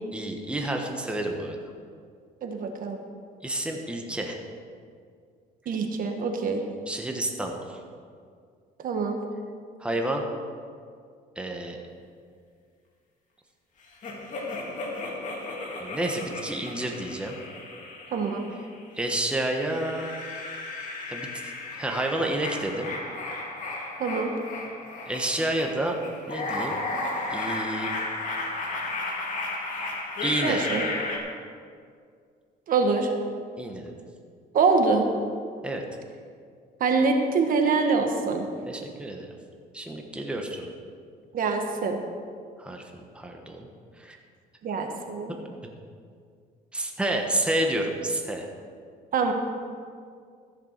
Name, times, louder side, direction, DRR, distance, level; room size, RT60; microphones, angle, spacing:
voice 1, 0.1-1.6 3.4-4.4 6.9-7.8 9.8-10.2 11.3-11.8 15.8-17.4 18.9-20.1 21.1-21.5 21.8-22.9 25.1-26.0 26.3-26.8 27.3-27.9 30.2-30.6 33.6-33.9 35.6-35.8 38.7-39.3 39.7-40.7 42.6-43.7 44.0-44.2 45.5-45.7 46.7-48.5, right 1 dB, 5° right, 2 dB, 1.3 m, -30 dB
voice 2, 2.4-3.0 5.7-6.6 8.8-9.2 18.1-18.5 24.0-24.3 30.4-30.9 32.7-33.1 34.5-35.1 36.8-38.5 41.3-42.0 44.6-45.4 49.1-49.3, right 4 dB, 55° right, 4 dB, 1.4 m, -24 dB
sound 1, 14.0-18.7 19.3-31.2, left 2 dB, 50° left, 2.4 m, -34 dB
14.0 x 6.9 x 6.7 m, 2.2 s
cardioid pair, 110°, 17 cm